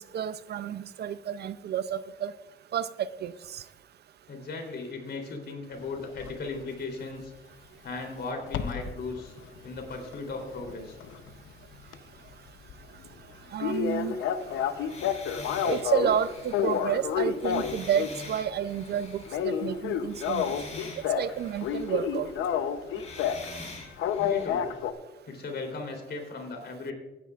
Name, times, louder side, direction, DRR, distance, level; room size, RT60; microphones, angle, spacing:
voice 1, 0.0-2.3 2.7-3.6 13.5-14.2 15.6-20.5 21.1-22.3, right 9 dB, 55° right, 16 dB, 0.5 m, -30 dB
voice 2, 4.3-7.3 7.8-9.3 9.6-11.0 24.2-24.7 25.2-26.9, left 3 dB, 55° left, 3 dB, 3.4 m, -37 dB
sound 1, 6.2-6.4 8.5-8.9 9.4-11.5 11.8-12.0 12.3-12.4 12.7-12.8 13.0-13.1 13.6-16.2 16.5-18.3 18.6-18.9 19.2-21.3 21.6-23.5 24.0-24.9, left 8 dB, 75° left, 0.8 m, -29 dB
sound 2, 14.4-19.8 20.1-22.1 22.9-24.5, left 3 dB, 35° left, 3.8 m, -45 dB
16.5 x 10.0 x 2.4 m, 1.1 s
cardioid pair, 90°, 20 cm